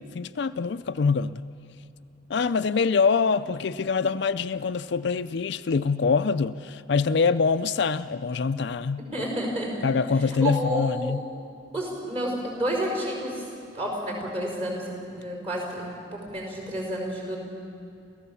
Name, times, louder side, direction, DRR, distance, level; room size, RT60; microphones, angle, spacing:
voice 1, 0.0-1.4 2.3-9.0 9.8-11.3, left 5 dB, 55° left, 12 dB, 0.4 m, -24 dB
voice 2, 9.1-9.7 10.4-11.1 11.7-13.5 13.7-17.4, right 1 dB, 30° right, -1 dB, 5.1 m, -30 dB
28.5 x 15.0 x 7.0 m, 2.6 s
head